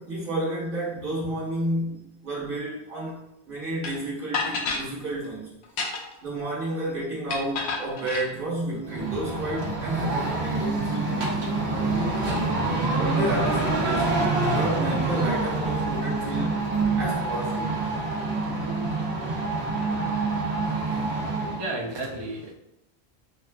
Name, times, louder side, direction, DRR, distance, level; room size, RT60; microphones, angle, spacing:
voice 1, 0.0-3.2 3.4-5.5 6.2-12.3 13.0-16.5 17.0-17.9, right 1 dB, 55° right, -5 dB, 1.3 m, -31 dB
sound 1, 3.8-3.9 4.3-4.9 5.6-6.2 7.3-8.3, left 4 dB, 90° left, 0.9 m, -29 dB
sound 2, 8.6-17.2, left 1 dB, 50° left, 0.9 m, -44 dB
sound 3, 8.9-21.7, right 3 dB, 80° right, 1.1 m, -26 dB
voice 2, 21.4-22.5, right 2 dB, 35° right, -2 dB, 0.5 m, -33 dB
6.0 x 2.4 x 2.2 m, 0.86 s
omnidirectional pair, 1.1 m